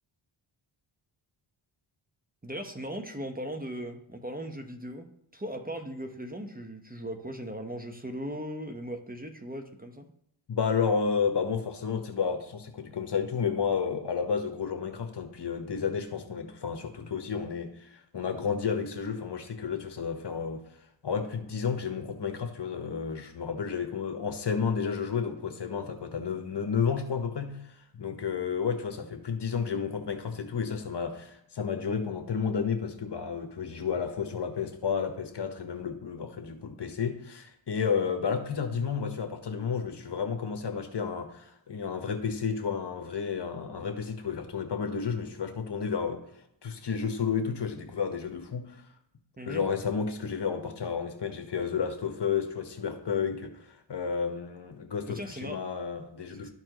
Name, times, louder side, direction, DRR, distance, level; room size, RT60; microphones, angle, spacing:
voice 1, 2.4-10.1 49.4-49.6 55.1-55.6 56.3-56.5, equal, 20° right, 5 dB, 1.0 m, -38 dB
voice 2, 10.5-20.6 21.0-46.2 46.6-48.9 49.5-56.5, left 6 dB, 55° left, 6 dB, 1.2 m, -31 dB
12.5 x 4.4 x 3.0 m, 0.77 s
cardioid pair, 55°, 48 cm